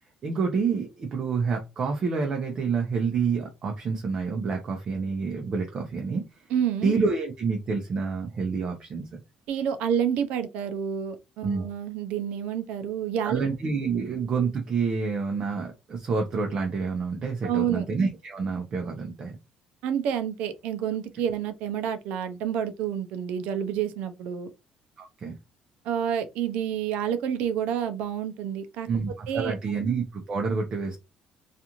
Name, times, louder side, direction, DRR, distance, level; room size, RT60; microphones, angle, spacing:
voice 1, 0.2-6.5 6.8-9.2 11.4-11.6 13.2-19.4 25.0-25.4 28.9-31.0, right 5 dB, 40° right, 0.6 m, -28 dB
voice 2, 6.5-6.9 9.5-13.4 17.4-17.9 19.8-24.5 25.8-28.9 29.3-29.8, right 9 dB, 85° right, 0.5 m, -29 dB
2.4 x 2.4 x 2.8 m
cardioid pair, 140°, 2 cm